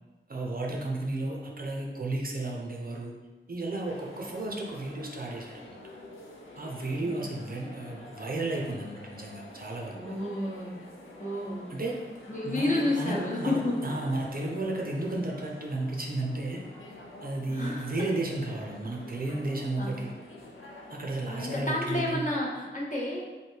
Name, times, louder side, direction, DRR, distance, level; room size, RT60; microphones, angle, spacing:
voice 1, 0.3-3.1 3.5-5.8 6.6-10.1 11.7-12.0 12.4-16.6 17.2-20.1 20.9-22.3, right 2 dB, 50° right, -1 dB, 0.6 m, -33 dB
sound 1, 3.8-21.6, left 1 dB, 90° left, 0.7 m, -48 dB
voice 2, 9.9-10.7 11.2-11.8 12.3-14.0 17.5-17.9 19.8-20.0 21.3-23.2, left 1 dB, 40° left, -3 dB, 0.9 m, -31 dB
3.3 x 2.7 x 4.4 m, 1.2 s
wide cardioid pair, 90°, 20 cm